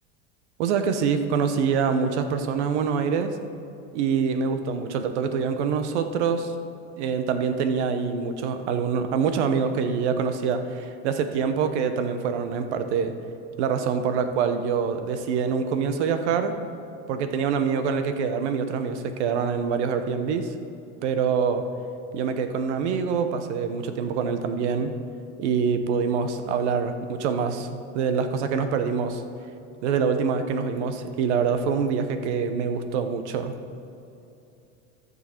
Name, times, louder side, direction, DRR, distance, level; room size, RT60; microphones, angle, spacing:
voice 1, 0.6-3.3 3.9-6.5 7.0-13.1 13.6-16.6 17.1-20.5 21.0-21.6 22.1-25.0 25.4-29.2 29.8-33.6, right 6 dB, 80° right, 9 dB, 1.0 m, -25 dB
14.0 x 6.7 x 4.5 m, 2.8 s
supercardioid pair, 110°, 34 cm